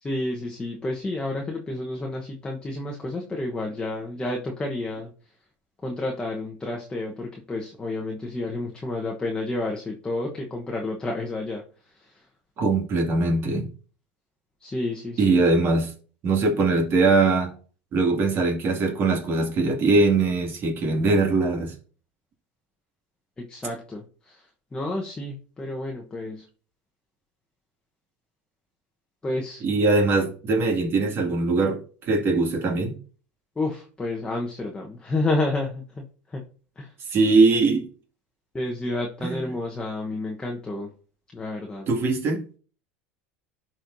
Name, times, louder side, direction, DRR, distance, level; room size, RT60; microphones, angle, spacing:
voice 1, 0.0-5.1 5.8-12.3 14.6-15.4 23.4-26.5 29.2-29.6 33.5-36.4 36.8-36.9 38.5-40.9 41.3-41.9, left 2 dB, 15° left, 1.1 m, -30 dB
voice 2, 12.6-13.7 15.2-15.9 16.2-17.5 17.9-21.7 29.6-33.0 37.1-37.9 39.2-39.4 41.9-42.4, right 3 dB, 40° right, 2.3 m, -21 dB
11.5 x 4.5 x 2.7 m
supercardioid pair, 110°, 6 cm